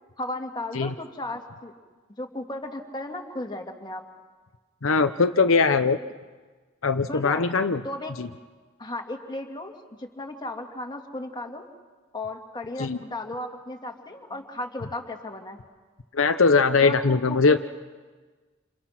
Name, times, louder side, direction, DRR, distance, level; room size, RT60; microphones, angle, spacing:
voice 1, 0.2-1.7 2.2-4.0 7.1-7.4 7.8-8.1 8.8-11.7 12.1-15.6 16.8-17.6, left 1 dB, 20° left, 2 dB, 2.4 m, -35 dB
voice 2, 4.8-6.0 6.8-7.8 8.2-8.3 12.8-13.0 16.1-17.6, left 4 dB, 70° left, 8 dB, 0.8 m, -21 dB
28.5 x 28.5 x 6.0 m, 1.4 s
head